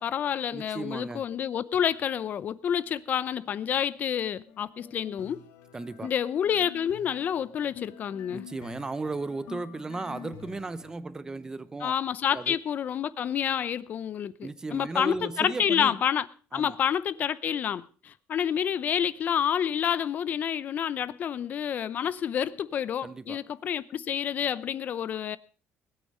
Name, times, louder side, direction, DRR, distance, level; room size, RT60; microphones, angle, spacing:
voice 1, 0.0-5.4 6.0-8.5 11.8-16.3 16.5-25.4, left 9 dB, 40° left, 0.7 m, -29 dB
voice 2, 0.5-1.2 5.7-6.1 8.3-11.9 12.3-12.6 14.4-15.9 16.5-16.8 23.0-23.5, right 3 dB, 15° right, 0.7 m, -36 dB
sound 1, 4.5-10.9, left 9 dB, 85° left, 2.0 m, -48 dB
20.0 x 8.8 x 5.4 m
cardioid pair, 160°, 5 cm